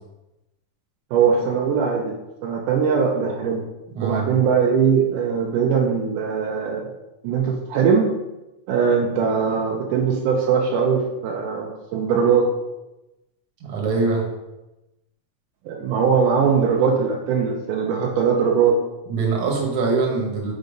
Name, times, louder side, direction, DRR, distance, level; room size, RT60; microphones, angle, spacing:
voice 1, 1.1-2.2 2.4-3.6 4.0-6.9 7.2-8.1 8.7-12.5 15.7-18.8, right 6 dB, 80° right, 0 dB, 2.2 m, -20 dB
voice 2, 3.9-4.3 13.6-14.2 19.1-20.5, right 4 dB, 55° right, -1 dB, 2.1 m, -23 dB
5.3 x 4.7 x 5.0 m, 0.99 s
omnidirectional pair, 3.7 m